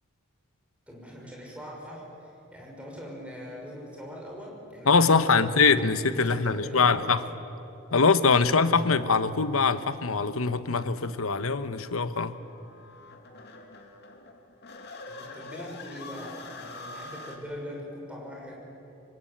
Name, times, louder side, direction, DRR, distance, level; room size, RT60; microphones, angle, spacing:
voice 1, 0.9-5.6 6.3-7.0 15.1-18.5, equal, 5° right, -2 dB, 6.1 m, -42 dB
voice 2, 4.8-7.2 7.9-12.3, left 4 dB, 80° left, 12 dB, 1.1 m, -23 dB
sound 1, 11.7-17.4, left 3 dB, 50° left, 2.6 m, -45 dB
26.0 x 24.5 x 8.9 m, 2.8 s
head